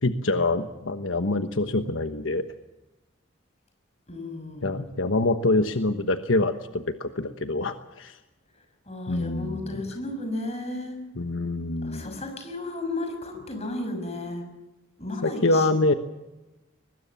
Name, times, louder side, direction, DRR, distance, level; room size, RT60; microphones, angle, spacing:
voice 1, 0.0-2.4 4.6-8.2 9.1-9.8 11.2-12.2 15.2-15.9, left 2 dB, 80° left, 8 dB, 1.2 m, -25 dB
voice 2, 4.1-4.9 8.9-11.0 11.8-14.5 15.0-15.7, left 2 dB, 35° left, 6 dB, 6.0 m, -34 dB
23.0 x 20.5 x 7.1 m, 1.0 s
head